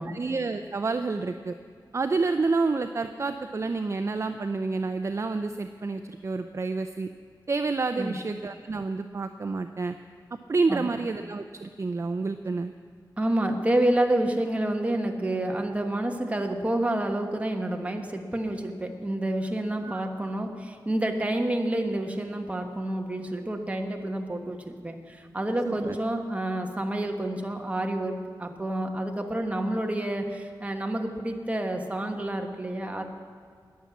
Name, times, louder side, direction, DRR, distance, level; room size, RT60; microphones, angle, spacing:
voice 1, 0.1-1.5 1.9-7.1 7.5-9.9 10.5-12.7 19.8-20.1 25.6-26.0, right 3 dB, 35° right, 8 dB, 0.5 m, -29 dB
voice 2, 13.2-33.0, right 1 dB, 15° right, 3 dB, 1.3 m, -29 dB
20.0 x 7.4 x 7.1 m, 2.1 s
wide cardioid pair, 110°, 8 cm